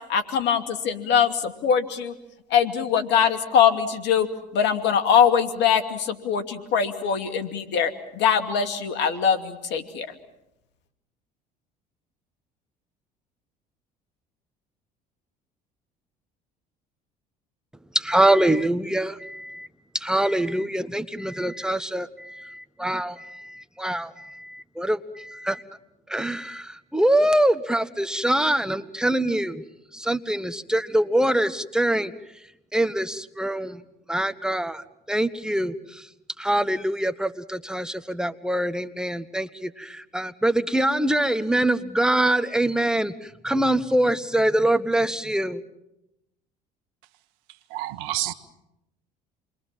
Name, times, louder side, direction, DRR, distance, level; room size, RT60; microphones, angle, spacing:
voice 1, 0.1-2.1 2.5-4.3 4.5-10.1, left 7 dB, 60° left, 9 dB, 2.5 m, -22 dB
voice 2, 17.9-19.7 19.9-25.6 26.1-29.6 29.9-32.1 32.7-33.8 34.1-36.1 36.4-45.6, right 1 dB, 5° right, 12 dB, 1.5 m, -24 dB
voice 3, 47.7-48.3, right 15 dB, 70° right, 12 dB, 1.4 m, -28 dB
28.5 x 22.5 x 7.7 m, 0.89 s
hypercardioid pair, 65°, 20 cm